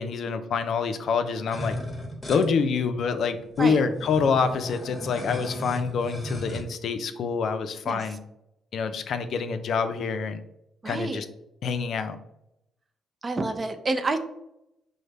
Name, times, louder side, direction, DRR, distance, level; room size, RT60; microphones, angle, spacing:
voice 1, 0.0-1.8 2.3-8.2 8.7-10.4 10.9-11.3 11.6-12.2, left 5 dB, 65° left, 9 dB, 0.4 m, -26 dB
sound 1, 1.5-2.5 3.2-3.3 3.5-6.6, left 1 dB, 15° left, 1.0 m, -35 dB
voice 2, 10.8-11.2 13.2-14.2, right 3 dB, 30° right, 8 dB, 0.4 m, -28 dB
5.1 x 2.1 x 3.3 m, 0.83 s
cardioid pair, 90°, 0 cm